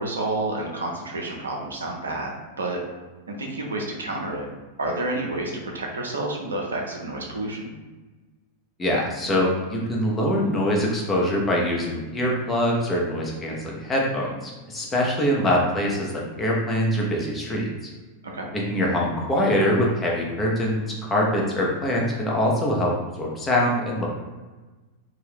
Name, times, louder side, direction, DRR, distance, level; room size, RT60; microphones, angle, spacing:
voice 1, 0.0-2.8 3.3-4.5 4.8-7.7 18.2-18.5, right 2 dB, 70° right, 0 dB, 0.6 m, -29 dB
voice 2, 8.8-17.7 18.5-24.1, equal, 15° left, -3 dB, 0.7 m, -24 dB
2.6 x 2.3 x 3.4 m, 1.2 s
figure-of-eight pair, 90°, 0 cm